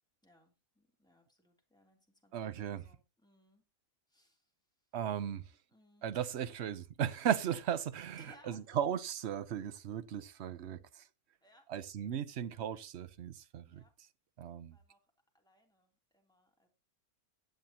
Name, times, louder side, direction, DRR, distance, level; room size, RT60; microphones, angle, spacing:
voice 1, 0.2-3.6 4.1-4.5 5.7-6.1 8.1-8.8 11.4-11.7 13.6-13.9 14.7-15.0 15.3-16.7, left 1 dB, 5° left, 3.0 m, -65 dB
voice 2, 2.3-2.8 4.9-5.5 6.0-11.1 11.7-13.8 14.4-14.8, right 9 dB, 55° right, 0.8 m, -36 dB
16.5 x 9.2 x 2.9 m
omnidirectional pair, 1.6 m